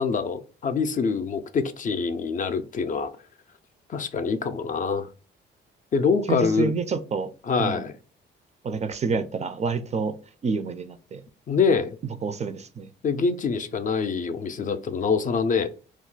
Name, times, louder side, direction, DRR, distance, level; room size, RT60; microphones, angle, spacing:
voice 1, 0.0-3.1 3.9-5.1 5.9-6.7 7.4-7.9 11.5-12.0 13.0-15.7, left 5 dB, 40° left, 0.4 m, -25 dB
voice 2, 6.3-7.3 7.6-7.9 8.6-10.1 10.4-11.2 12.2-12.9, right 5 dB, 35° right, 0.3 m, -28 dB
2.3 x 2.1 x 3.8 m
cardioid pair, 90°, 20 cm